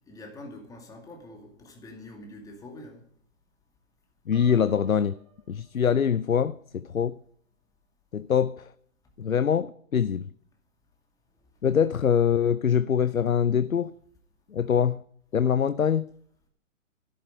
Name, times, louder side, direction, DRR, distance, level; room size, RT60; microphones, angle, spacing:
voice 1, 0.0-3.1, left 1 dB, 10° left, 2.4 m, -45 dB
voice 2, 4.3-5.2 5.5-7.2 8.1-8.7 9.2-10.3 11.6-13.9 14.5-15.0 15.3-16.1, left 8 dB, 90° left, 0.6 m, -24 dB
Piano, 4.3-6.2, right 2 dB, 55° right, 4.4 m, -52 dB
13.0 x 11.5 x 5.3 m
figure-of-eight pair, 130°, 40 cm